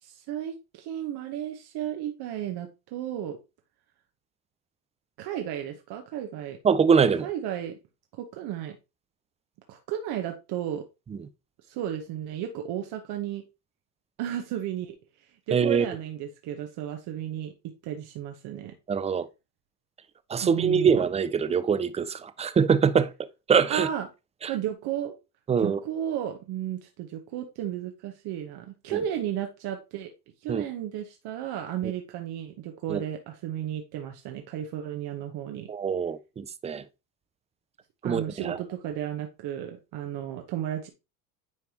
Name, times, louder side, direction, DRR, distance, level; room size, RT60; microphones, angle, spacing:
voice 1, 0.0-3.4 5.2-6.6 7.2-7.8 8.2-8.8 9.7-10.8 11.7-13.4 14.2-15.0 15.5-17.5 17.8-18.7 20.4-21.0 23.7-24.1 24.5-25.1 25.6-30.1 30.4-35.7 38.0-40.9, right 10 dB, 55° right, 1.1 m, -33 dB
voice 2, 6.6-7.3 11.1-11.2 15.5-15.9 18.9-19.3 20.3-23.1 23.5-23.9 24.4-24.5 25.5-25.8 28.9-29.0 30.5-30.6 31.8-31.9 32.9-33.0 35.7-36.8 38.0-38.6, right 6 dB, 15° right, 0.4 m, -24 dB
9.7 x 3.5 x 2.9 m
hypercardioid pair, 85°, 46 cm